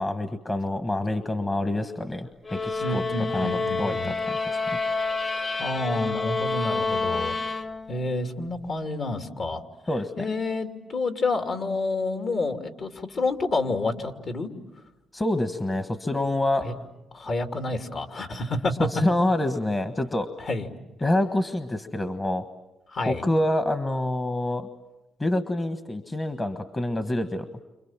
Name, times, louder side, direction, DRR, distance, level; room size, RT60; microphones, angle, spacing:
voice 1, 0.0-3.0 3.3-4.6 9.9-10.3 15.1-16.7 18.8-20.3 21.0-22.4 23.1-24.7 25.2-27.6, left 1 dB, 25° left, 9 dB, 1.4 m, -27 dB
sound 1, 2.4-8.1, left 3 dB, 40° left, 1.8 m, -28 dB
voice 2, 2.8-4.1 5.6-7.3 7.9-9.6 10.2-14.5 16.6-16.7 17.1-18.9 20.5-20.7 22.9-23.2, left 3 dB, 55° left, 6 dB, 2.9 m, -29 dB
30.0 x 26.5 x 7.5 m, 1.0 s
cardioid pair, 80°, 0 cm